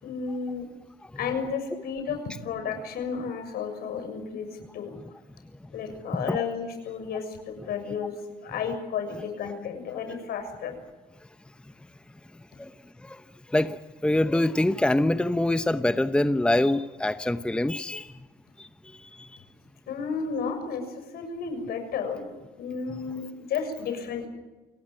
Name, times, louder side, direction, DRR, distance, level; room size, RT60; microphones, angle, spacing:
voice 1, 0.0-0.7 1.1-4.9 5.7-8.1 8.4-10.7 19.9-22.3 22.6-24.3, left 6 dB, 65° left, 7 dB, 6.9 m, -32 dB
voice 2, 13.5-18.3 18.6-19.4, left 1 dB, 5° left, 11 dB, 0.9 m, -25 dB
28.5 x 19.0 x 8.9 m, 1.1 s
cardioid pair, 110°, 17 cm